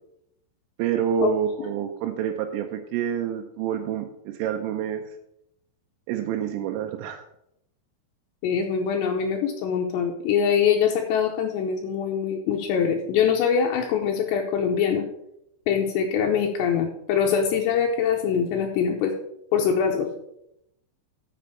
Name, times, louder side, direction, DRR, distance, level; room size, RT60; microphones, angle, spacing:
voice 1, 0.8-5.0 6.1-7.2, right 8 dB, 85° right, 4 dB, 3.3 m, -27 dB
voice 2, 8.4-15.0 15.7-19.1 19.5-20.1, left 7 dB, 80° left, 1 dB, 2.7 m, -23 dB
7.3 x 6.8 x 6.5 m, 0.80 s
omnidirectional pair, 5.7 m